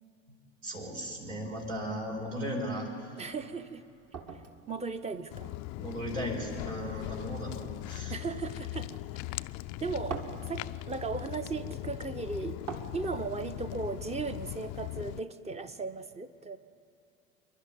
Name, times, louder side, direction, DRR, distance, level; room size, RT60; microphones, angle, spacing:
voice 1, 0.6-3.1 5.8-8.2, equal, 75° right, -1 dB, 4.6 m, -36 dB
sound 1, 2.5-15.4, right 5 dB, 40° right, 2.1 m, -49 dB
voice 2, 3.2-3.9 4.7-5.6 6.9-7.3 8.1-8.9 9.3-9.5 9.8-10.2 10.5-12.6 12.9-16.6, right 4 dB, 15° right, 11 dB, 0.9 m, -37 dB
Walk footsteps, 5.3-15.2, left 18 dB, 45° left, 0.5 m, -39 dB
26.5 x 12.0 x 9.6 m, 2.7 s
figure-of-eight pair, 70°, 39 cm